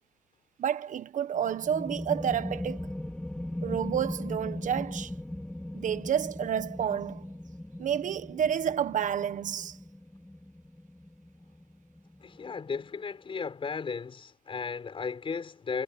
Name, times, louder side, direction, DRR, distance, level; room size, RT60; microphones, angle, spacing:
voice 1, 0.6-2.9 3.6-5.1 5.7-7.3 7.8-9.8, right 9 dB, 50° right, 1.3 m, -30 dB
sound 1, 1.3-12.7, left 1 dB, 5° left, 4.3 m, -39 dB
voice 2, 12.2-15.8, left 5 dB, 30° left, 5.4 m, -35 dB
cardioid pair, 110°, 17 cm